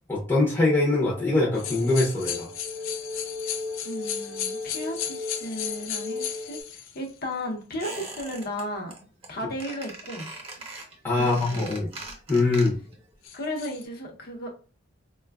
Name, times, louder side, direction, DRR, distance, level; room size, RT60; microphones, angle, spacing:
voice 1, 0.1-2.5 11.0-11.9 12.3-12.7, left 2 dB, 10° left, 0.7 m, -23 dB
sound 1, 1.0-6.6, left 3 dB, 70° right, 0.5 m, -37 dB
sound 2, 1.5-7.0 7.7-7.8 13.2-13.8, left 9 dB, 90° left, 0.5 m, -35 dB
voice 2, 3.8-8.9 9.3-10.3 11.1-11.9 13.3-14.5, left 1 dB, 50° left, 0.7 m, -35 dB
Squeak, 7.8-8.6 8.9-9.3 9.6-13.0 13.3-13.4, right 3 dB, 30° right, 0.8 m, -41 dB
4.2 x 2.2 x 2.3 m
head